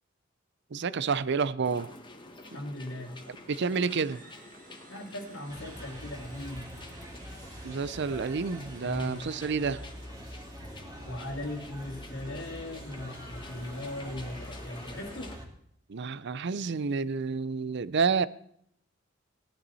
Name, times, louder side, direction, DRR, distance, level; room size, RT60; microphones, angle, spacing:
voice 1, 0.7-1.9 3.5-4.2 7.6-9.8 15.9-18.3, right 5 dB, 60° right, 0.5 m, -29 dB
sound 1, 1.6-15.4, left 2 dB, 25° left, 1.5 m, -49 dB
voice 2, 2.5-3.2 4.9-6.7 8.8-9.2 11.0-15.4, left 1 dB, 70° left, 2.4 m, -39 dB
sound 2, 3.6-10.3, right 4 dB, 45° right, 2.7 m, -56 dB
sound 3, 5.5-15.5, equal, 20° right, 2.9 m, -45 dB
18.0 x 12.0 x 4.1 m
head